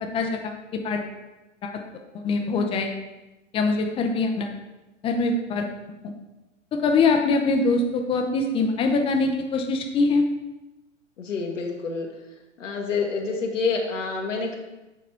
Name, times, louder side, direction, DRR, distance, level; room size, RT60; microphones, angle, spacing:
voice 1, 0.0-1.0 1.6-1.7 2.2-2.9 3.5-4.5 5.0-5.7 6.0-6.1 6.7-10.2, left 3 dB, 15° left, 4 dB, 0.6 m, -23 dB
voice 2, 11.2-12.1 12.6-14.6, left 4 dB, 75° left, 1 dB, 1.2 m, -27 dB
6.8 x 4.0 x 4.3 m, 1.0 s
figure-of-eight pair, 110°, 38 cm